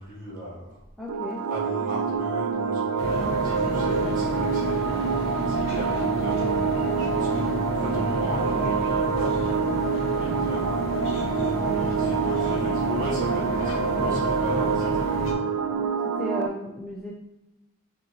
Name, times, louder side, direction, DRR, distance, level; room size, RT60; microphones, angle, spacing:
voice 1, 0.0-0.8 1.5-11.0 11.3-11.4 11.8-15.5, equal, 35° right, -5 dB, 1.3 m, -37 dB
voice 2, 1.0-1.4 16.1-17.1, left 1 dB, ahead, -5 dB, 0.4 m, -34 dB
sound 1, 1.1-16.5, right 6 dB, 80° right, 0.3 m, -26 dB
sound 2, 3.0-15.3, left 2 dB, 60° left, 0.7 m, -31 dB
5.1 x 2.7 x 3.0 m, 0.97 s
head